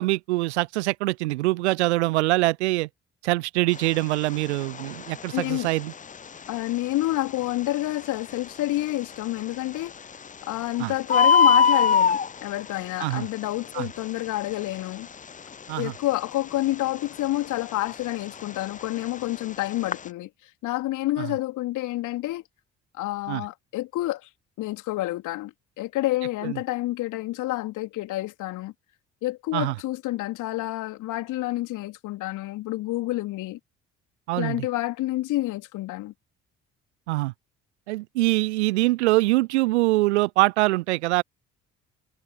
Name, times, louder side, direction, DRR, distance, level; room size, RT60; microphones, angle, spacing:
voice 1, 0.0-2.9 3.2-5.9 10.8-10.9 13.0-13.3 13.7-13.9 15.7-15.9 21.2-21.3 23.3-23.4 26.4-26.6 29.5-29.7 34.3-34.6 37.1-37.3 37.9-41.2, right 20 dB, 70° right, 1.0 m, -24 dB
Bird, 3.7-20.1, left 6 dB, 20° left, 0.7 m, -27 dB
voice 2, 5.3-5.7 6.5-9.9 10.4-15.1 15.8-22.4 22.9-24.3 24.6-28.7 29.2-33.6 34.3-36.1, left 17 dB, 60° left, 3.5 m, -29 dB
figure-of-eight pair, 50°, 35 cm